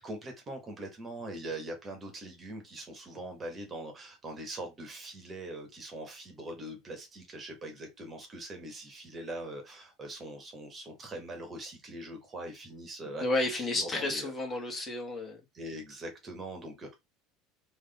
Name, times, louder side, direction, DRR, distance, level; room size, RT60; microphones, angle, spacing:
voice 1, 0.0-14.3 15.5-16.9, right 1 dB, 30° right, 1.7 m, -42 dB
voice 2, 13.2-15.4, left 2 dB, 25° left, 1.8 m, -31 dB
3.8 x 3.1 x 3.6 m
supercardioid pair, 95°, 0 cm